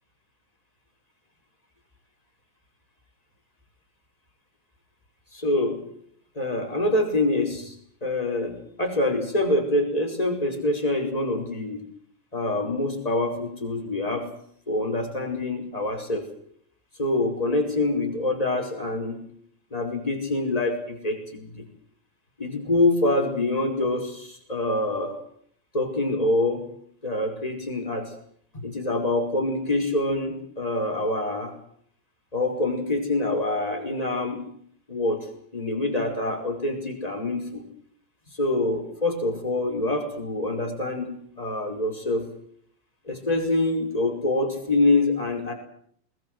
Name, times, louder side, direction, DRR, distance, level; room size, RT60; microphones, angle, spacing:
voice 1, 5.3-5.8 6.3-7.7 8.0-11.8 12.3-14.3 14.7-16.3 17.0-19.3 19.7-21.6 22.4-25.2 25.7-26.7 27.0-28.1 28.5-31.6 32.3-34.4 34.9-35.3 35.5-37.6 38.4-42.3 43.1-45.5, left 2 dB, 10° left, 2 dB, 5.1 m, -25 dB
22.0 x 21.0 x 7.9 m, 0.64 s
omnidirectional pair, 3.4 m